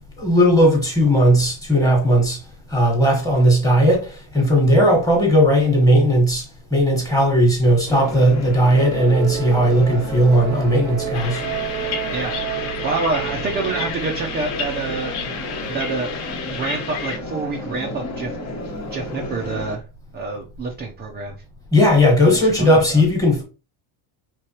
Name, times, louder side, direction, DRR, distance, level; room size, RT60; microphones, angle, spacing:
voice 1, 0.2-2.4 2.7-6.4 6.7-11.4 21.7-23.4, equal, 5° left, 1.3 m, -16 dB
sound 1, 7.9-19.8, equal, 35° left, 1.1 m, -32 dB
sound 2, 8.7-13.9, right 12 dB, 70° right, 0.8 m, -31 dB
sound 3, 11.1-17.2, left 6 dB, 75° left, 1.3 m, -31 dB
voice 2, 12.1-15.2 15.7-16.1 16.5-18.4 18.9-19.8 20.1-21.4 22.3-23.0, right 3 dB, 20° right, 0.5 m, -27 dB
4.8 x 3.4 x 2.9 m
cardioid pair, 155°, 49 cm